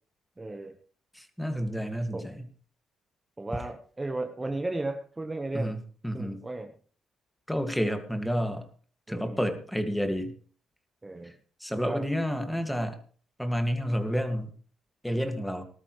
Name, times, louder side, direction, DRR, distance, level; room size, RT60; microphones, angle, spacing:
voice 1, 0.4-0.7 2.1-2.3 3.4-5.8 6.1-6.7 9.1-9.4 11.0-11.3 11.8-12.1, right 2 dB, 20° right, 5 dB, 1.3 m, -34 dB
voice 2, 1.1-2.4 5.5-6.4 7.5-8.7 9.1-10.3 11.2-11.3 11.6-13.0 13.4-14.5 15.0-15.6, equal, 5° left, 6 dB, 2.2 m, -30 dB
19.5 x 13.0 x 3.3 m, 0.43 s
cardioid pair, 90°, 0 cm